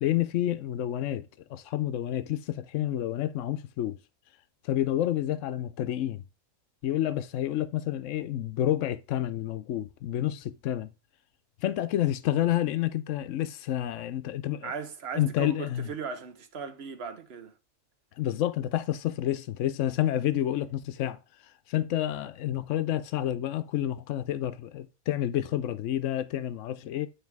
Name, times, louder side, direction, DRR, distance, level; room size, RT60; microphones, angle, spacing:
voice 1, 0.0-4.0 4.6-6.2 6.8-10.9 11.6-14.7 15.1-15.9 18.2-21.2 21.7-27.1, left 12 dB, 70° left, 1.0 m, -29 dB
voice 2, 14.6-17.5, right 6 dB, 55° right, 1.1 m, -37 dB
9.0 x 3.4 x 4.7 m
omnidirectional pair, 1.4 m